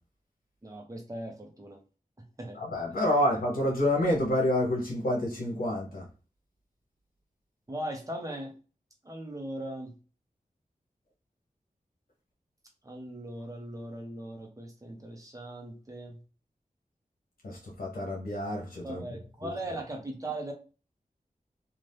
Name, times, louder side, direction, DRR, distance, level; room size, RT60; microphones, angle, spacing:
voice 1, 0.6-1.8 2.4-2.6 7.7-8.5 9.0-9.9 12.8-16.2 18.8-20.5, right 1 dB, 25° right, 2 dB, 0.8 m, -39 dB
voice 2, 2.7-6.0 17.4-19.0, left 1 dB, 85° left, -2 dB, 0.9 m, -28 dB
2.7 x 2.4 x 3.3 m, 0.35 s
wide cardioid pair, 85°, 15 cm